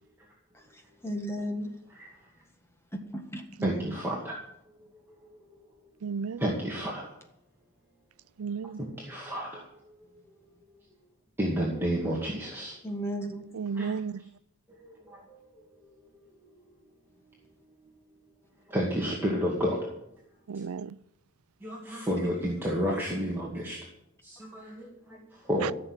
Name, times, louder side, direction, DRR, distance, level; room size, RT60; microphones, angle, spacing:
voice 1, 0.5-1.8 2.9-3.6 12.8-13.4 13.8-14.0 22.8-22.9, equal, 10° left, 1.7 m, -36 dB
voice 2, 3.6-4.4 4.8-5.4 6.4-7.2 8.8-10.2 11.4-12.8 13.8-13.9 14.8-15.4 16.2-16.3 18.7-19.9 21.6-23.8 24.2-25.7, equal, 10° right, 2.3 m, -31 dB
voice 3, 6.0-6.4 8.4-8.8 13.5-14.2 20.5-20.9 25.6-25.7, right 6 dB, 90° right, 0.5 m, -33 dB
15.0 x 6.9 x 9.7 m
head